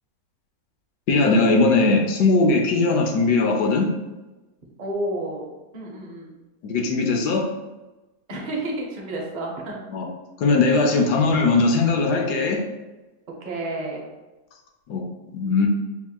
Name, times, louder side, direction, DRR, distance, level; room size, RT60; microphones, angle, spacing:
voice 1, 1.1-3.9 6.6-7.5 9.9-10.1 10.4-12.6 14.9-15.0 15.3-15.7, left 3 dB, 85° left, 2 dB, 1.2 m, -19 dB
voice 2, 4.8-6.3 8.3-9.8 13.4-14.0, right 1 dB, 55° right, -2 dB, 0.5 m, -30 dB
4.7 x 2.8 x 2.2 m, 1.1 s
omnidirectional pair, 1.7 m